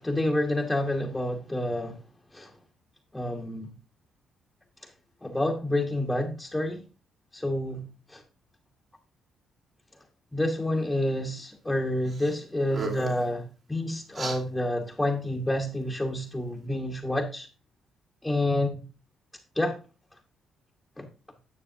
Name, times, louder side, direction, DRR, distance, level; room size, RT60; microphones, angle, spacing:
voice 1, 0.0-2.0 2.3-2.5 3.1-3.7 5.2-6.8 7.3-7.8 8.1-8.2 10.3-17.5 18.2-18.8 19.6-19.8 21.0-21.1, left 1 dB, 10° left, 0 dB, 1.3 m, -28 dB
sound 1, 12.1-12.3 12.6-13.3 14.1-14.4, right 3 dB, 45° right, 2.4 m, -35 dB
9.9 x 6.7 x 2.8 m, 0.33 s
cardioid pair, 90°, 0 cm